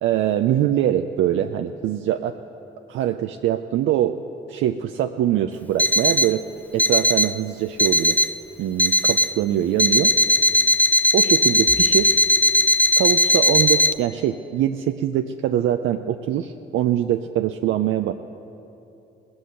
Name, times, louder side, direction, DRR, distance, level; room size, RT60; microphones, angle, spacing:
voice 1, 0.0-2.3 2.9-4.2 4.5-6.4 6.7-8.2 8.6-10.1 11.1-12.2 13.0-18.1, right 11 dB, 80° right, 7 dB, 0.5 m, -23 dB
Alarm, 5.8-6.4 6.8-7.4 7.8-8.4 8.8-9.4 9.8-13.9, left 1 dB, 10° left, 0.4 m, -18 dB
19.0 x 7.8 x 8.0 m, 2.9 s
cardioid pair, 90°, 20 cm